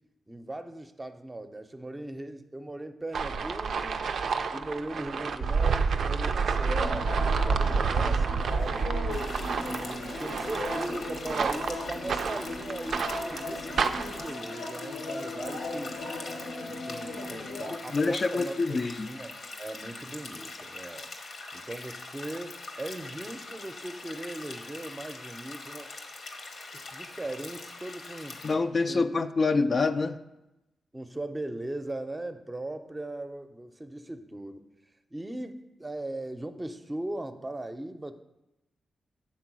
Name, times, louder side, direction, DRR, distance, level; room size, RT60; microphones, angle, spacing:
voice 1, 0.3-4.0 4.5-8.9 9.4-16.0 16.7-19.3 19.6-21.1 21.5-25.9 26.7-28.4 28.9-29.0 30.9-34.6 35.1-38.2, right 1 dB, 20° right, 7 dB, 0.6 m, -39 dB
sound 1, 3.1-14.2, right 5 dB, 70° right, 0.4 m, -29 dB
sound 2, 6.5-17.8, left 2 dB, 90° left, 1.1 m, -38 dB
sound 3, 9.1-28.5, left 3 dB, 70° left, 1.0 m, -43 dB
voice 2, 17.9-19.1 28.4-30.2, left 3 dB, 45° left, 8 dB, 0.4 m, -26 dB
7.4 x 3.8 x 6.1 m, 0.95 s
supercardioid pair, 45°, 0 cm